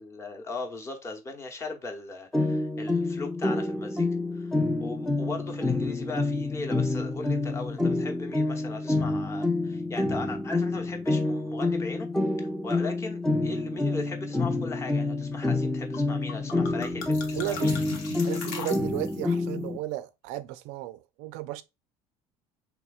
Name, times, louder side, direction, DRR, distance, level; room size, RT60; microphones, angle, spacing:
voice 1, 0.0-4.1 4.3-4.5 4.8-12.1 12.6-17.8, left 3 dB, 25° left, 0.8 m, -38 dB
sound 1, 2.3-19.8, left 2 dB, 5° left, 0.4 m, -28 dB
sound 2, 15.9-16.0 16.3-19.3, left 5 dB, 85° left, 0.8 m, -39 dB
voice 2, 17.3-17.8 18.2-21.6, right 15 dB, 75° right, 0.4 m, -34 dB
3.5 x 3.0 x 2.3 m
supercardioid pair, 115°, 12 cm